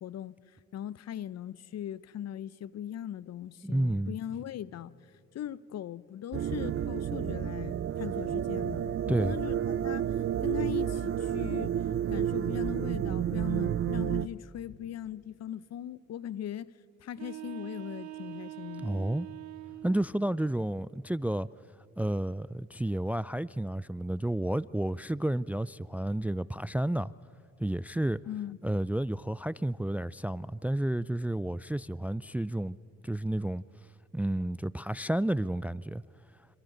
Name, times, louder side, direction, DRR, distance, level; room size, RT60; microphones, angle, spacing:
voice 1, 0.0-0.4 0.7-4.9 5.3-9.6 9.8-10.1 10.4-11.8 12.1-16.7 17.0-18.9 28.3-28.6, left 10 dB, 55° left, 0.8 m, -39 dB
voice 2, 3.6-4.2 9.1-9.3 18.8-19.3 19.8-21.5 22.0-27.1 27.6-28.2 28.6-32.8 33.0-33.6 34.1-36.0, right 1 dB, 5° right, 0.4 m, -31 dB
sound 1, 6.3-14.3, right 9 dB, 45° right, 0.6 m, -31 dB
sound 2, 17.1-20.1, right 15 dB, 65° right, 1.2 m, -43 dB
27.5 x 26.5 x 3.9 m
hypercardioid pair, 55°, 30 cm